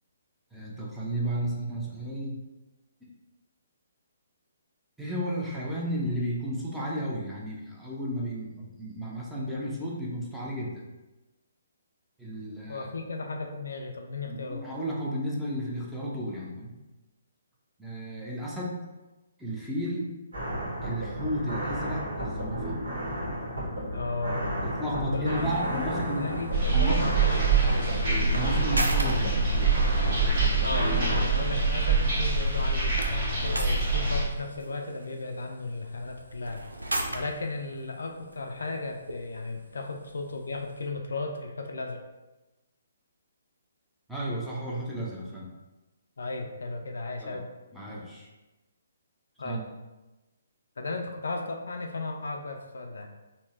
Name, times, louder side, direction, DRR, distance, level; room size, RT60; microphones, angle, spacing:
voice 1, 0.5-2.4 3.0-3.1 5.0-10.8 12.2-12.9 14.3-16.7 17.8-18.8 19.4-20.1 20.8-22.8 24.6-26.3 26.7-27.1 28.3-29.8 44.1-45.5 47.2-47.4 47.7-48.3 49.4-49.6, equal, 5° right, -6 dB, 0.6 m, -33 dB
voice 2, 12.7-14.6 23.9-24.6 24.9-25.5 26.1-27.9 30.6-36.6 37.1-42.0 46.2-47.5 49.4-49.6 50.8-53.1, left 3 dB, 65° left, 3 dB, 0.3 m, -35 dB
sound 1, 20.3-31.2, equal, 65° right, 1.1 m, -33 dB
sound 2, 25.4-40.9, right 1 dB, 85° right, 0.4 m, -40 dB
sound 3, 26.5-34.2, right 4 dB, 40° right, 1.2 m, -25 dB
3.7 x 2.1 x 2.5 m, 1.1 s
figure-of-eight pair, 135°, 0 cm